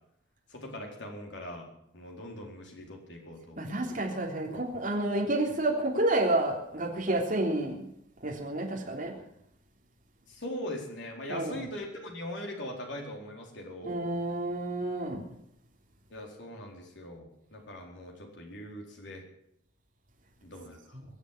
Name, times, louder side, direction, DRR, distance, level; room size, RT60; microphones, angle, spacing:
voice 1, 0.5-1.7 1.9-3.6 10.3-14.0 16.1-19.2 20.4-21.0, left 1 dB, 65° left, 1 dB, 4.3 m, -41 dB
voice 2, 3.6-7.9 8.2-9.1 11.3-11.7 13.8-15.2 20.9-21.0, right 1 dB, 45° right, -1 dB, 3.5 m, -30 dB
22.5 x 7.5 x 8.5 m, 0.75 s
head